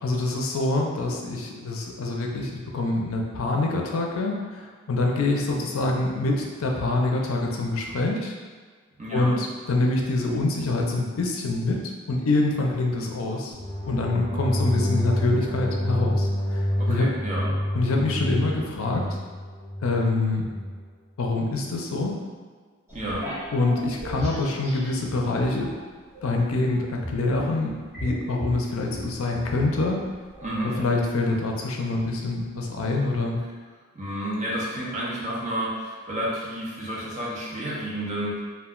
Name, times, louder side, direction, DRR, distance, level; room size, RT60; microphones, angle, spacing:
voice 1, 0.0-8.3 9.1-11.8 12.1-13.5 13.9-16.6 16.9-17.1 17.7-19.2 19.8-20.5 21.2-22.2 23.5-25.7 26.2-30.0 30.6-33.4, left 2 dB, 75° left, 1 dB, 0.4 m, -25 dB
voice 2, 9.0-9.4 16.8-17.6 22.9-23.3 30.4-30.7 33.9-38.4, right 1 dB, 35° right, -6 dB, 0.6 m, -30 dB
sound 1, 13.5-20.8, equal, 30° left, 0.6 m, -28 dB
sound 2, 22.9-25.7 26.1-30.9, equal, 15° right, 1.0 m, -37 dB
2.3 x 2.1 x 3.6 m, 1.5 s
head